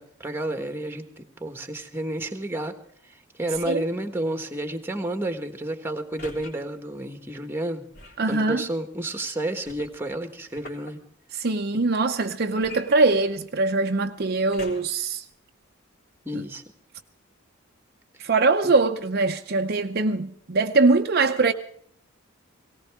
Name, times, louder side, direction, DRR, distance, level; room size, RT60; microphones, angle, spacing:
voice 1, 0.0-2.7 3.1-7.8 8.3-11.0 16.2-16.6 18.6-18.7, right 1 dB, 10° right, 1.4 m, -31 dB
sound 1, 3.5-3.9 6.2-6.5 7.9-8.3 9.6-10.9 12.6-13.6 14.5-15.1 15.7-15.8, left 1 dB, 45° left, 3.4 m, -44 dB
voice 2, 8.2-8.7 11.3-15.2 16.3-16.4 18.2-21.5, right 3 dB, 50° right, 0.7 m, -22 dB
18.5 x 18.0 x 3.5 m
head